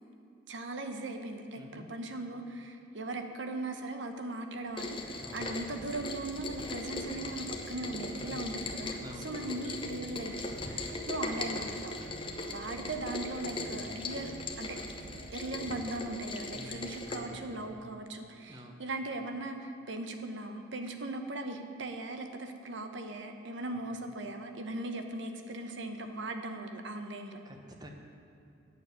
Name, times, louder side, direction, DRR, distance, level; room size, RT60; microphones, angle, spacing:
voice 1, 0.5-9.0 9.2-12.0 12.5-14.3 14.6-14.9 15.3-27.4, right 2 dB, 70° right, 6 dB, 0.9 m, -39 dB
voice 2, 1.6-1.9 5.2-5.5 8.2-8.7 9.0-9.6 16.5-17.9 18.5-18.8 27.4-27.9, equal, 20° right, 3 dB, 0.9 m, -49 dB
sound 1, 4.7-16.5, right 2 dB, 50° right, 0.8 m, -50 dB
Rain, 4.8-17.2, left 2 dB, 25° left, 0.8 m, -39 dB
9.1 x 6.7 x 8.3 m, 2.7 s
head